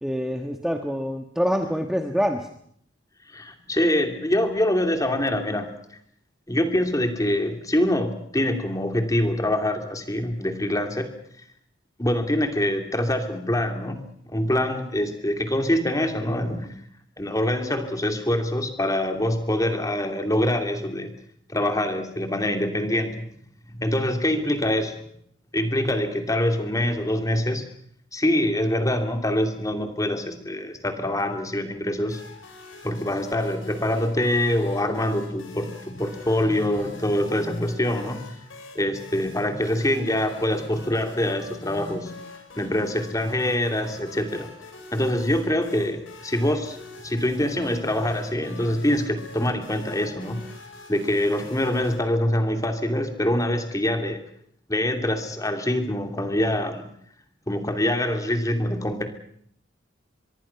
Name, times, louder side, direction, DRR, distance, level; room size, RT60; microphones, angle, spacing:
voice 1, 0.0-2.5, equal, 5° right, 4 dB, 1.4 m, -26 dB
voice 2, 3.3-5.7 6.5-11.1 12.0-16.7 17.2-21.1 21.5-23.3 23.7-25.0 25.5-27.6 28.1-32.2 32.8-38.5 38.7-42.2 42.6-44.5 44.9-46.8 47.0-50.4 50.9-54.2 54.7-56.9 57.5-59.1, left 1 dB, 15° left, 6 dB, 2.7 m, -25 dB
sound 1, 32.1-52.0, left 3 dB, 90° left, 7.5 m, -45 dB
25.0 x 22.0 x 5.8 m, 0.66 s
head